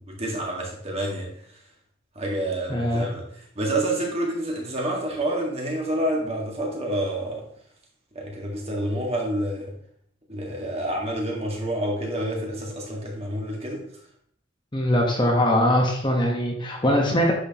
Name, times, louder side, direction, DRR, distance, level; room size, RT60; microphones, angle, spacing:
voice 1, 0.1-1.3 2.2-3.3 3.6-7.4 8.2-9.7 10.3-13.8, right 1 dB, 30° right, -1 dB, 1.9 m, -28 dB
voice 2, 2.7-3.1 14.7-17.3, left 1 dB, 20° left, 0 dB, 1.2 m, -21 dB
9.9 x 6.3 x 3.0 m, 0.66 s
head